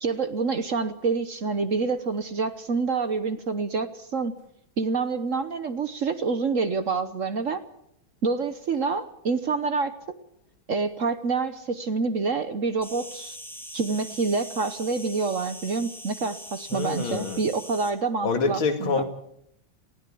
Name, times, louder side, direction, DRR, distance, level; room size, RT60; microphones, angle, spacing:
voice 1, 0.0-4.3 4.8-7.6 8.2-9.9 10.7-13.4 13.7-19.0, right 4 dB, 50° right, 1.1 m, -27 dB
Insect, 12.8-17.9, equal, ahead, 3.3 m, -42 dB
voice 2, 16.7-17.4 18.2-19.0, left 4 dB, 85° left, 2.9 m, -26 dB
19.5 x 16.0 x 8.6 m
omnidirectional pair, 2.2 m